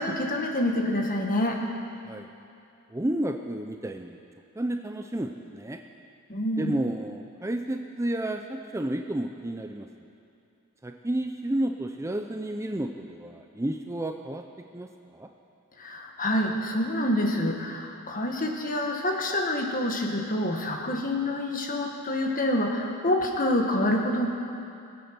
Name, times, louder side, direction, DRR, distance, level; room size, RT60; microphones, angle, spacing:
voice 1, 0.0-1.6 6.3-6.8 15.8-24.3, left 1 dB, 40° left, 2 dB, 1.6 m, -27 dB
voice 2, 2.9-4.2 4.6-5.8 6.6-9.9 10.8-14.4 14.7-15.3, right 1 dB, 15° right, 4 dB, 0.5 m, -31 dB
21.5 x 8.5 x 6.0 m, 2.6 s
head